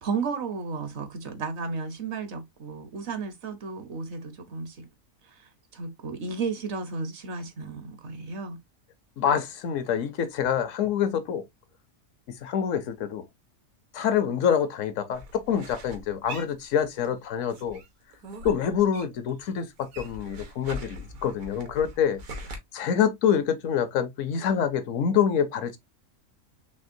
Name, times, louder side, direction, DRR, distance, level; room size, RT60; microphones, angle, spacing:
voice 1, 0.0-4.9 5.4-8.6, right 4 dB, 60° right, 0.9 m, -33 dB
voice 2, 9.2-11.4 12.4-13.2 13.9-17.8 18.4-22.2 22.7-25.8, left 8 dB, 70° left, 0.9 m, -26 dB
sound 1, 15.1-17.2 17.5-19.3 19.6-22.6, equal, 80° right, 1.4 m, -41 dB
4.2 x 3.2 x 2.5 m
omnidirectional pair, 1.4 m